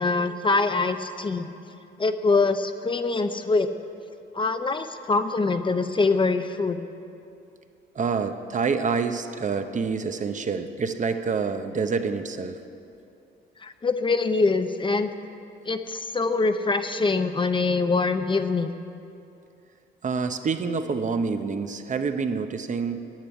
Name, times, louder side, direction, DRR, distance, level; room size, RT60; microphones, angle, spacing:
voice 1, 0.0-1.5 2.0-3.7 4.3-6.9 13.6-15.1 15.7-18.7, left 3 dB, 25° left, 9 dB, 0.6 m, -24 dB
voice 2, 7.9-12.6 20.0-23.0, right 5 dB, 40° right, 8 dB, 0.8 m, -27 dB
10.5 x 7.7 x 9.8 m, 2.7 s
cardioid pair, 90°, 20 cm